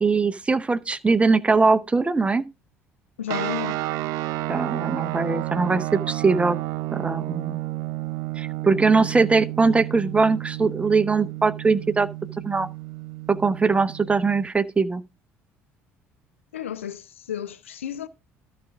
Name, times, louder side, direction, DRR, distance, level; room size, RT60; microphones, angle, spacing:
voice 1, 0.0-2.4 4.5-6.6 6.9-7.6 8.4-12.1 12.4-12.7 13.3-15.0, right 4 dB, 15° right, 0.8 m, -21 dB
voice 2, 3.2-3.8 16.5-18.1, left 10 dB, 75° left, 0.6 m, -32 dB
sound 1, 3.3-14.5, right 18 dB, 55° right, 0.5 m, -31 dB
13.5 x 5.1 x 3.6 m
figure-of-eight pair, 55°, 7 cm